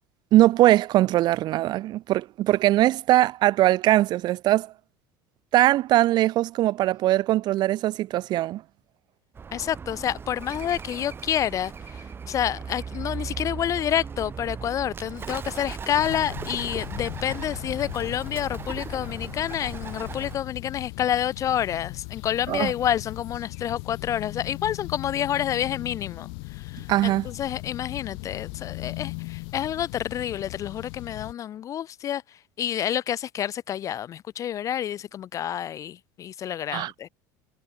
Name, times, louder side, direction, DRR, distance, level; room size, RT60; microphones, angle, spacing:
voice 1, 0.3-4.7 5.5-8.6 22.5-22.7 26.9-27.3 36.7-36.9, right 15 dB, 50° right, 0.9 m, -21 dB
Bird, 9.4-20.4, right 6 dB, 25° right, 3.4 m, -37 dB
voice 2, 9.5-11.7 12.3-26.3 27.0-32.2 32.6-37.1, left 10 dB, 35° left, 0.4 m, -28 dB
sound 1, 15.9-31.3, left 40 dB or more, 75° left, 0.7 m, -38 dB
supercardioid pair, 120°, 9 cm